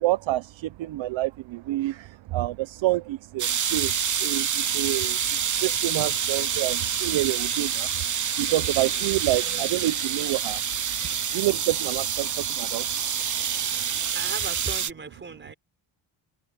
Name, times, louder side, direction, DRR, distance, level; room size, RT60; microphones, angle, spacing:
voice 1, 0.0-10.6 11.0-13.0, right 16 dB, 75° right, 0.7 m, -28 dB
sound 1, 3.4-14.9, right 8 dB, 40° right, 1.3 m, -27 dB
voice 2, 14.1-15.5, right 4 dB, 25° right, 5.0 m, -36 dB
open air
wide cardioid pair, 160°, 46 cm